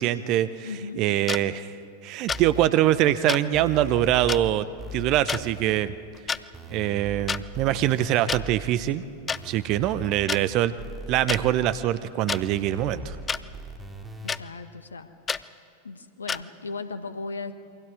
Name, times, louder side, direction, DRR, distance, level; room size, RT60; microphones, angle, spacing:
voice 1, 0.0-0.7 1.0-1.7 2.0-5.9 6.7-10.7 11.1-13.2, right 13 dB, 40° right, 14 dB, 0.8 m, -24 dB
voice 2, 0.6-1.0 14.2-15.1 15.8-17.5, left 4 dB, 75° left, 10 dB, 1.3 m, -36 dB
sound 1, 1.3-1.4 2.3-2.4 3.3-3.4 4.3-4.4 5.3-5.4 6.1-6.4 7.3-7.4 8.3-8.4 9.3-9.4 10.3-10.4 11.3-11.4 12.3-12.4 13.3-13.4 14.3-14.4 15.3-15.4 16.3-16.4, left 6 dB, 20° left, 0.4 m, -28 dB
sound 2, 2.3-2.7 3.5-4.5 4.8-5.7 6.5-8.7 9.3-10.4 10.8-11.7 12.3-14.3, right 1 dB, 10° right, 2.6 m, -39 dB
28.0 x 23.5 x 4.9 m, 2.4 s
figure-of-eight pair, 90°, 0 cm